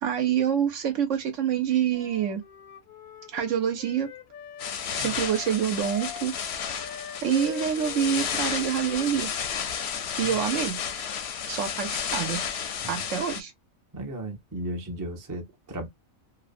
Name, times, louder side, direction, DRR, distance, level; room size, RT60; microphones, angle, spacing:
voice 1, 0.0-2.4 3.3-4.1 5.0-6.3 7.2-9.3 10.2-10.8 11.5-12.4 12.9-13.5, right 9 dB, 70° right, 0.9 m, -26 dB
Wind instrument woodwind instrument, 1.9-9.9, left 10 dB, 90° left, 1.1 m, -44 dB
sound 1, 4.6-13.4, left 7 dB, 65° left, 0.7 m, -32 dB
voice 2, 13.9-15.9, right 1 dB, 25° right, 0.4 m, -35 dB
2.7 x 2.1 x 2.5 m
omnidirectional pair, 1.4 m